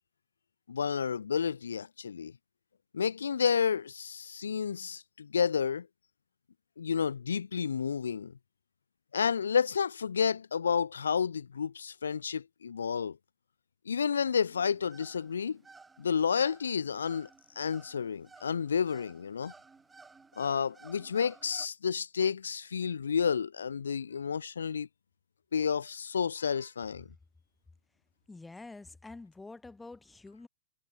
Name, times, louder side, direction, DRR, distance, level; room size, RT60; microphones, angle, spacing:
voice 1, 0.7-2.3 2.9-5.9 6.8-8.3 9.1-13.2 13.9-15.6 16.0-17.3 17.6-19.5 20.4-24.9 25.5-27.1, left 6 dB, 90° left, 0.5 m, -30 dB
sound 1, 14.3-21.7, right 4 dB, 10° right, 5.4 m, -56 dB
voice 2, 28.3-30.5, left 3 dB, 10° left, 1.7 m, -47 dB
hypercardioid pair, 120°, 0 cm